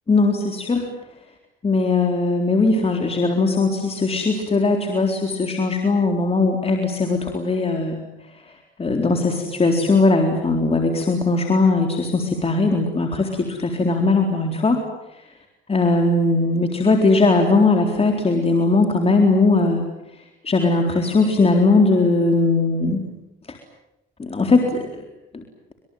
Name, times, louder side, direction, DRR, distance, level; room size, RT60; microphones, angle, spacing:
voice 1, 0.1-0.9 1.6-8.0 8.8-13.4 13.8-14.8 15.1-15.3 15.7-19.8 20.4-23.1 23.5-23.6 24.2-24.8 25.3-25.4, left 3 dB, 30° left, 3 dB, 4.0 m, -19 dB
25.5 x 22.5 x 9.3 m, 0.91 s
cardioid pair, 90°, 20 cm